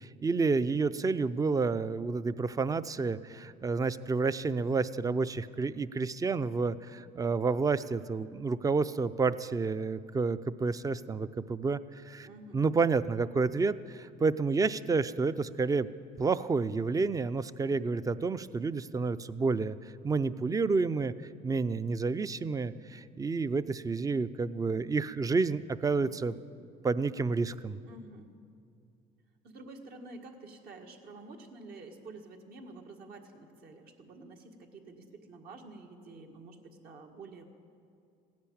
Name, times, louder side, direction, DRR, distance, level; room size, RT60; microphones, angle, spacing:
voice 1, 0.0-12.3 12.5-15.9 16.2-19.8 20.0-21.1 21.4-26.4 26.8-27.8, right 4 dB, 20° right, 15 dB, 0.5 m, -30 dB
voice 2, 12.2-12.6 27.8-28.3 29.4-37.5, right 3 dB, 65° right, 3 dB, 1.8 m, -49 dB
16.0 x 10.5 x 8.7 m, 2.5 s
cardioid pair, 110°, 17 cm